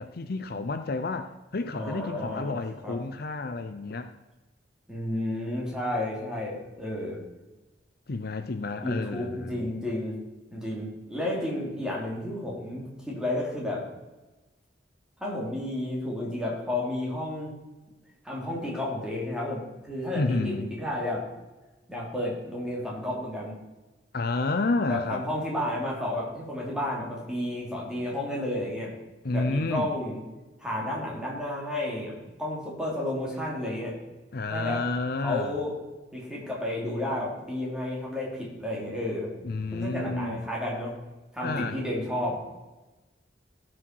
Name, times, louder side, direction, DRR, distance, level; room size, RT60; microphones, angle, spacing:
voice 1, 0.0-4.1 8.1-9.7 20.1-20.7 24.1-25.3 29.2-29.9 34.3-35.6 39.4-40.4 41.4-41.8, left 3 dB, 55° left, 9 dB, 0.6 m, -30 dB
voice 2, 1.7-2.6 2.8-3.0 4.9-7.2 8.8-10.2 10.5-13.9 15.2-17.5 18.2-21.2 21.9-23.6 24.9-28.9 29.3-30.2 30.6-34.0 34.5-34.8 35.2-35.7 36.1-39.3 39.7-40.9 41.3-42.4, left 1 dB, 5° right, -4 dB, 3.3 m, -32 dB
16.5 x 6.3 x 4.6 m, 1.1 s
head